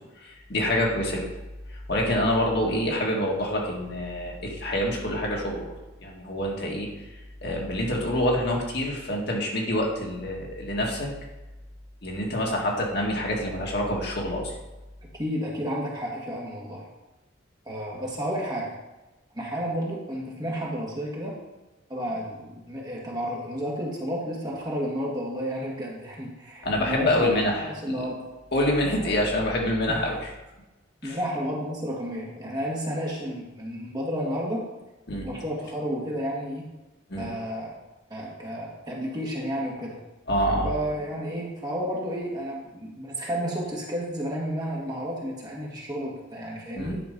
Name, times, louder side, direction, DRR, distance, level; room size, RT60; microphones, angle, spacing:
voice 1, 0.2-1.3 1.9-5.7 6.0-6.9 7.4-11.1 12.0-14.5 26.6-27.6 28.5-30.1 31.0-31.2 35.1-35.3 37.1-37.3 40.3-40.7 46.8-46.9, left 1 dB, 55° left, -1 dB, 1.8 m, -26 dB
voice 2, 15.1-16.9 17.7-18.7 19.3-21.4 21.9-28.2 29.2-29.4 29.9-30.1 31.0-34.6 35.2-36.7 37.2-37.7 38.1-40.0 40.6-47.0, equal, 20° right, -3 dB, 1.8 m, -31 dB
10.0 x 4.6 x 5.3 m, 1.1 s
head